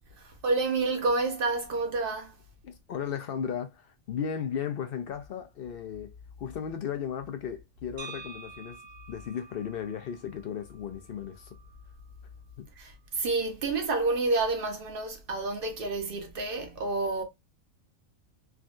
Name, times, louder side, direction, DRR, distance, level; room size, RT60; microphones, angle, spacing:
voice 1, 0.2-2.4 12.8-17.2, right 3 dB, 50° right, 0.8 m, -29 dB
voice 2, 2.6-8.8 9.1-11.6 12.6-12.7, left 8 dB, 65° left, 0.6 m, -35 dB
sound 1, 8.0-12.0, right 4 dB, 70° right, 1.1 m, -48 dB
3.6 x 2.3 x 2.4 m
omnidirectional pair, 1.4 m